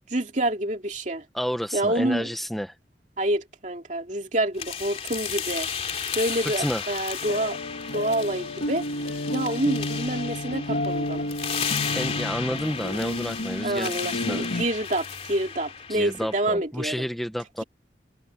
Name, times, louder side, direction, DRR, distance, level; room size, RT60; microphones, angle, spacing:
voice 1, 0.1-1.2 1.7-2.3 3.2-7.6 7.9-8.8 9.3-11.2 13.6-17.0, right 1 dB, 45° right, 2.8 m, -27 dB
voice 2, 1.3-2.7 6.6-6.8 11.9-13.9 14.2-14.6 15.9-17.6, equal, ahead, 0.9 m, -30 dB
sound 1, 4.6-16.5, left 7 dB, 35° left, 3.0 m, -34 dB
sound 2, 7.2-14.6, left 1 dB, 75° left, 1.5 m, -31 dB
head